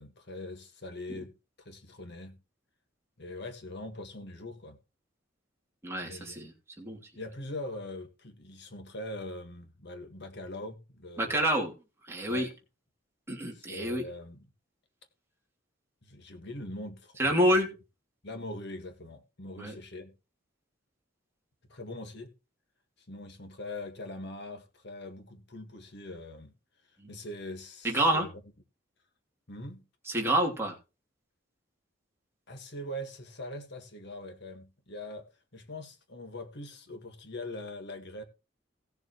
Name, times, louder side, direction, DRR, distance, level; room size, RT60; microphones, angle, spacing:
voice 1, 0.0-2.4 3.2-4.8 6.0-6.5 7.2-11.5 12.3-12.5 13.5-14.4 16.0-17.3 18.2-20.1 21.7-22.3 23.0-26.5 27.1-28.3 29.5-29.8 32.5-38.2, left 1 dB, 65° left, 1.8 m, -42 dB
voice 2, 5.8-7.0 11.2-11.7 12.1-12.5 13.3-14.0 17.2-17.7 19.6-19.7 27.0-27.1 27.8-28.3 30.1-30.8, right 1 dB, 15° right, 2.8 m, -28 dB
18.0 x 7.0 x 3.1 m
head